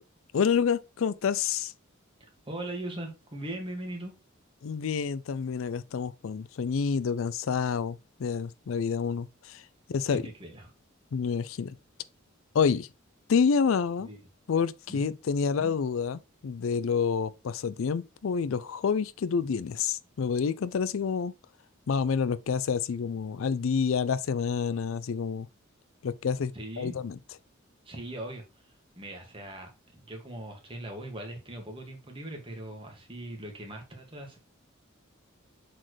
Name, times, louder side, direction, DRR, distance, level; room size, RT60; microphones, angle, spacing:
voice 1, 0.3-1.7 4.6-10.2 11.1-11.8 12.5-12.9 13.3-14.1 14.5-21.3 21.9-25.5 26.0-27.2, left 6 dB, 75° left, 0.4 m, -28 dB
voice 2, 2.2-4.2 10.1-10.7 14.0-14.2 14.9-15.0 26.5-27.0 27.9-28.4 29.0-34.4, right 1 dB, 25° right, 1.9 m, -40 dB
7.5 x 4.4 x 3.1 m
head